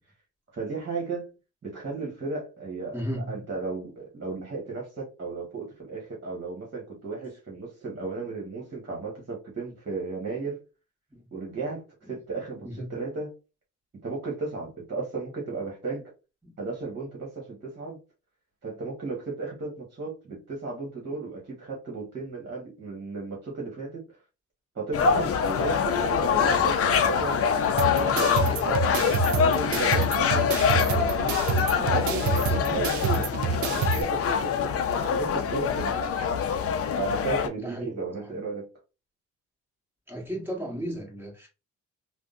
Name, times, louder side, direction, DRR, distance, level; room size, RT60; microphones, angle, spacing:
voice 1, 0.5-1.3 1.6-10.6 11.3-11.8 12.1-13.3 14.0-16.1 16.6-18.0 18.6-24.0 24.7-27.4 27.8-31.1 31.7-36.1 37.0-38.7, right 4 dB, 35° right, 1.5 m, -35 dB
voice 2, 2.9-3.4 11.1-11.2 12.6-13.0 16.4-16.6 37.5-38.4 40.1-41.5, equal, 5° right, 1.6 m, -35 dB
sound 1, 24.9-37.5, left 6 dB, 50° left, 0.5 m, -25 dB
sound 2, 27.8-34.0, right 4 dB, 70° right, 0.6 m, -28 dB
3.5 x 2.3 x 2.5 m
cardioid pair, 90°, 30 cm